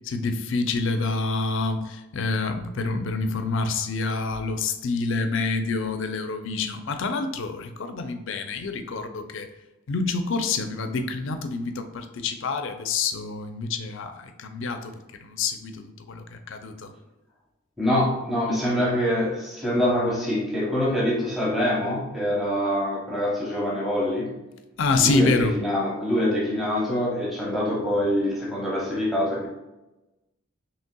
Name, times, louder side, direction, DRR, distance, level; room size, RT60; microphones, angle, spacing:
voice 1, 0.1-9.5 9.9-14.9 15.2-16.9 24.8-25.6, left 3 dB, 60° left, 7 dB, 0.4 m, -27 dB
voice 2, 17.8-24.3 25.0-29.5, left 1 dB, ahead, -5 dB, 0.7 m, -25 dB
5.3 x 3.2 x 2.2 m, 1.0 s
head